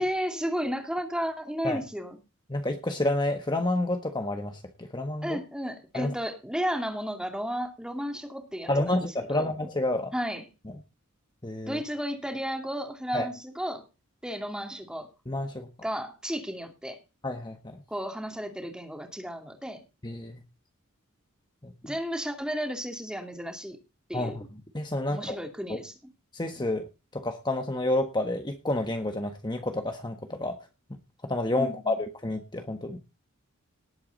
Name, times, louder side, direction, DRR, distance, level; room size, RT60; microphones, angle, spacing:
voice 1, 0.0-2.2 5.2-9.0 9.3-9.4 10.1-10.4 11.6-13.8 14.2-15.1 15.8-17.0 17.9-19.8 21.8-23.8 24.1-24.4 25.1-25.9 31.6-32.0, equal, 5° right, 4 dB, 2.5 m, -33 dB
voice 2, 2.5-5.4 5.9-6.1 8.7-10.1 11.4-11.8 13.1-13.3 15.3-15.7 17.2-17.8 20.0-20.4 21.6-21.7 24.1-24.5 24.7-25.4 25.7-25.8 26.3-26.9 27.1-30.6 30.9-33.0, left 2 dB, 20° left, 5 dB, 1.3 m, -29 dB
18.5 x 8.5 x 4.0 m, 0.29 s
head